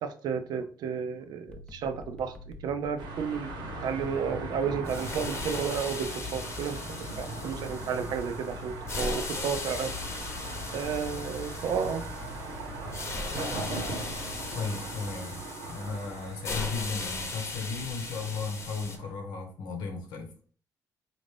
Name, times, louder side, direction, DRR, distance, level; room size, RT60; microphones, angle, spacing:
voice 1, 0.0-2.3 2.6-3.5 3.8-6.8 7.2-9.9 10.7-12.0, right 7 dB, 70° right, 9 dB, 0.5 m, -32 dB
sound 1, 1.5-14.6, left 3 dB, 15° left, 0.4 m, -46 dB
sound 2, 3.0-19.1, right 2 dB, 90° right, 1.0 m, -40 dB
sound 3, 4.8-19.0, left 3 dB, 40° left, 0.8 m, -38 dB
voice 2, 14.5-15.4 15.7-20.3, left 4 dB, 85° left, 4 dB, 1.0 m, -35 dB
4.2 x 2.6 x 3.3 m, 0.44 s
cardioid pair, 110°, 7 cm